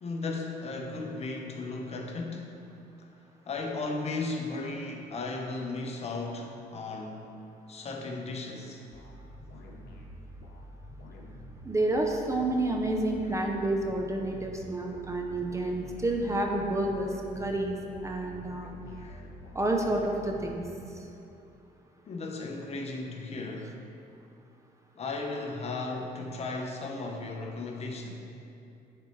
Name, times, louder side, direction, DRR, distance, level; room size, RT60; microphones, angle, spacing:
voice 1, 0.0-2.7 3.0-3.1 3.5-7.3 7.7-8.8 18.9-19.2 22.1-23.8 25.0-28.1, left 3 dB, 40° left, 1 dB, 0.8 m, -36 dB
sound 1, 8.9-21.2, equal, 80° left, 0.9 m, -47 dB
voice 2, 11.6-17.8 18.0-18.7 19.5-20.6 20.9-21.1, right 2 dB, 15° right, 1 dB, 0.6 m, -29 dB
9.7 x 4.2 x 3.2 m, 2.7 s
cardioid pair, 110°, 17 cm